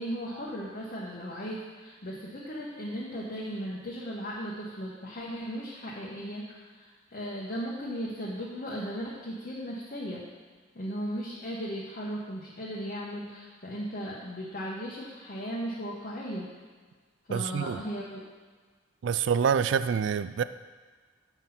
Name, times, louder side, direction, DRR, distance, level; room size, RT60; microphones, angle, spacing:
voice 1, 0.0-10.2 10.7-16.5 17.3-18.2, equal, 45° left, -5 dB, 1.1 m, -36 dB
voice 2, 17.3-17.8 19.0-20.4, right 7 dB, 65° right, 13 dB, 0.3 m, -26 dB
7.1 x 5.9 x 5.6 m, 1.5 s
head